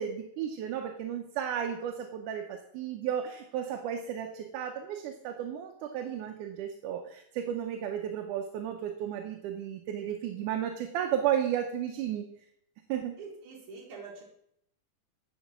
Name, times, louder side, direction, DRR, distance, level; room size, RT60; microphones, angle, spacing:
voice 1, 0.0-12.3 12.9-13.2, right 9 dB, 90° right, 3 dB, 2.3 m, -33 dB
voice 2, 13.2-14.2, right 4 dB, 70° right, -4 dB, 3.1 m, -45 dB
9.6 x 5.2 x 6.0 m, 0.74 s
omnidirectional pair, 3.5 m